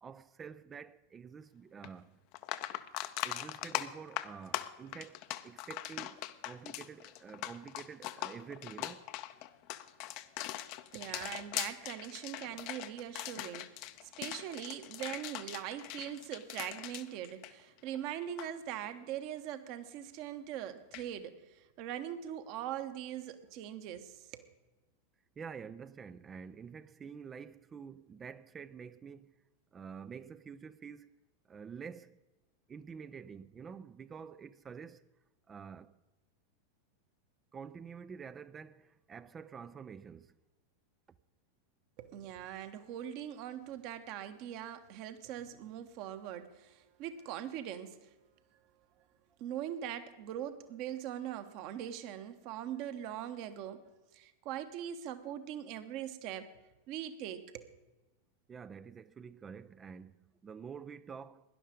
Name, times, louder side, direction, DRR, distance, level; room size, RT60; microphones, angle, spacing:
voice 1, 0.0-2.2 3.2-9.0 25.4-29.4 29.7-31.2 31.5-32.2 32.7-35.0 35.5-36.0 37.5-40.4 58.5-61.4, right 6 dB, 20° right, 0.4 m, -48 dB
sound 1, 1.8-1.9 2.3-18.0 18.2-18.5 20.9-21.1, left 15 dB, 45° left, 0.7 m, -41 dB
voice 2, 10.9-24.5 42.0-48.1 49.4-53.8 54.1-56.5 56.9-57.7, right 10 dB, 45° right, 1.2 m, -42 dB
17.5 x 11.0 x 5.1 m
figure-of-eight pair, 90°, 0 cm